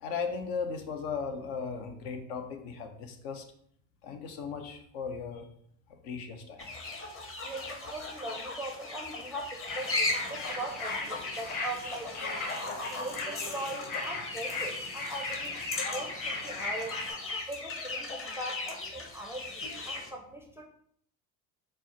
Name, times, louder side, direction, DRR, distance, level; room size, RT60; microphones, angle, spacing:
voice 1, 0.0-3.4 4.0-5.5 5.9-6.6, left 5 dB, 65° left, 5 dB, 0.9 m, -37 dB
sound 1, 6.6-20.1, left 2 dB, 25° left, 0.9 m, -37 dB
voice 2, 7.4-12.1 12.9-15.6 15.9-17.0 17.5-20.6, right 1 dB, 5° right, 1 dB, 0.4 m, -40 dB
sound 2, 9.7-17.1, left 3 dB, 45° left, 1.8 m, -39 dB
4.5 x 2.0 x 4.4 m, 0.65 s
hypercardioid pair, 75°, 49 cm